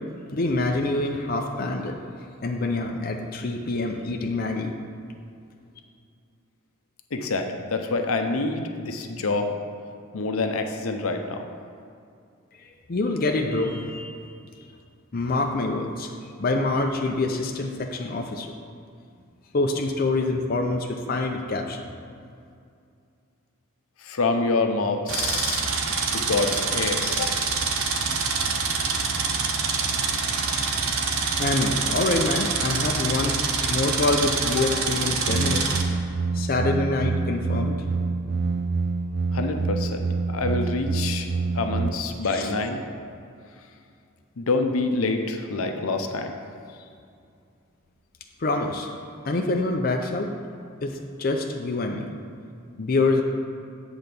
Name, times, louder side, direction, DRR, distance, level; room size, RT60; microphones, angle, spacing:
voice 1, 0.3-1.9 2.4-4.8 12.6-14.2 15.1-16.1 16.4-18.5 19.5-21.8 31.4-33.4 33.7-35.6 36.3-37.8 42.2-42.6 48.4-48.9 49.2-50.3 50.8-52.1 52.8-53.2, left 2 dB, 45° left, 2 dB, 0.5 m, -26 dB
voice 2, 7.1-9.5 10.1-11.5 24.0-25.6 26.1-27.4 39.3-41.3 41.5-42.8 44.4-46.3, left 3 dB, 80° left, 5 dB, 0.7 m, -26 dB
sound 1, 25.1-35.8, right 4 dB, 80° right, 0.8 m, -26 dB
sound 2, 35.2-41.9, right 4 dB, 50° right, 0.4 m, -26 dB
7.8 x 3.9 x 6.8 m, 2.4 s
head